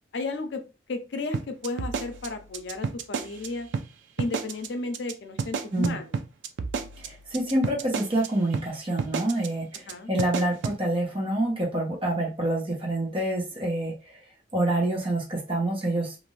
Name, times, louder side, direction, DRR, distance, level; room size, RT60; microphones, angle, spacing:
voice 1, 0.1-0.6 0.9-3.7 4.2-6.2 9.9-10.1, left 3 dB, 75° left, 7 dB, 0.5 m, -33 dB
sound 1, 1.3-3.5 3.7-3.9 4.2-4.7 4.9-5.1 5.4-8.3 8.5-8.7 9.0-9.5 9.7-9.9 10.2-10.8, right 5 dB, 80° right, 0.4 m, -30 dB
voice 2, 7.0-13.9 14.5-16.2, right 1 dB, 30° right, -2 dB, 0.9 m, -27 dB
2.6 x 2.5 x 3.1 m, 0.31 s
head